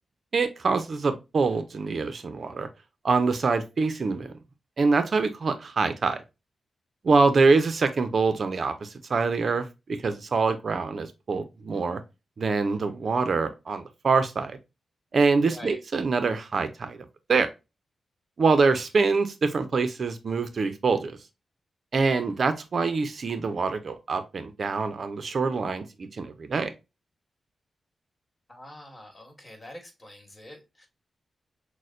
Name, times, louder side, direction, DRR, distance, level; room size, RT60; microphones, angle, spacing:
voice 1, 0.3-2.7 3.0-4.3 4.8-6.2 7.0-9.7 10.0-12.0 12.4-14.6 15.1-17.5 18.4-21.2 21.9-26.7, right 4 dB, 55° right, 0.6 m, -25 dB
voice 2, 15.4-15.8 22.1-22.5 28.5-30.9, left 1 dB, 25° left, 1.6 m, -45 dB
6.2 x 2.1 x 2.5 m
cardioid pair, 75°, 0 cm